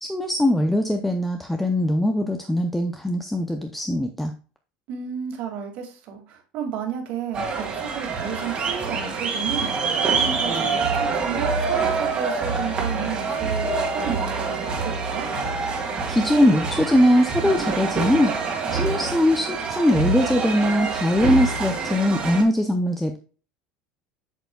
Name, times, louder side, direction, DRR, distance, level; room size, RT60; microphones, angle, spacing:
voice 1, 0.0-4.3 16.1-18.3 18.7-23.2, left 1 dB, 5° left, 5 dB, 0.5 m, -21 dB
voice 2, 4.9-9.9 10.2-15.3, right 8 dB, 50° right, 2 dB, 2.1 m, -32 dB
sound 1, 7.3-22.4, right 4 dB, 30° right, 1.9 m, -26 dB
8.0 x 6.9 x 2.3 m, 0.38 s
cardioid pair, 155°, 3 cm